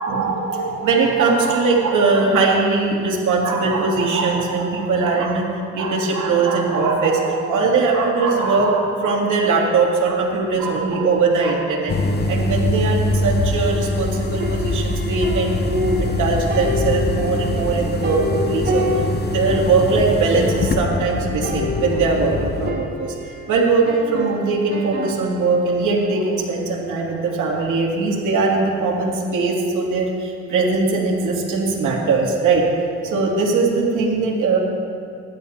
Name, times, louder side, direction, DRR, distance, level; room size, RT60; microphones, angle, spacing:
voice 1, 0.0-5.5 5.7-11.9 12.3-18.9 19.3-23.1 23.5-32.7 33.0-34.6, right 4 dB, 75° right, -2 dB, 2.8 m, -20 dB
sound 1, 11.9-22.7, left 2 dB, 35° left, 0.9 m, -23 dB
sound 2, 14.4-16.2 16.5-19.8 20.1-20.2 20.3-20.9 21.4-23.4 23.9-25.5, equal, 40° right, 3.3 m, -28 dB
20.5 x 11.5 x 2.9 m, 2.3 s
cardioid pair, 90°, 30 cm